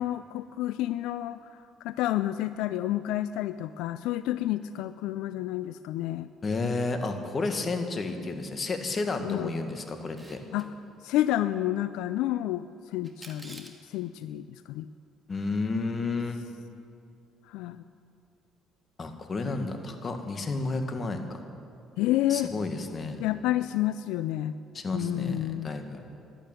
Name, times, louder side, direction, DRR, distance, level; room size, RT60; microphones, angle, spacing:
voice 1, 0.0-1.5 1.8-6.3 9.2-9.5 10.5-10.7 11.0-12.6 12.9-14.9 17.5-17.8 22.0-22.5 23.2-24.5 24.9-25.7, left 14 dB, 85° left, 13 dB, 0.4 m, -29 dB
voice 2, 6.4-10.4 15.3-16.4 19.0-21.4 22.3-23.2 24.7-26.0, left 3 dB, 35° left, 6 dB, 1.7 m, -31 dB
Camera, 10.0-10.7 13.0-13.8, right 1 dB, 10° right, 2.0 m, -48 dB
12.5 x 11.5 x 9.0 m, 2.5 s
cardioid pair, 90°, 0 cm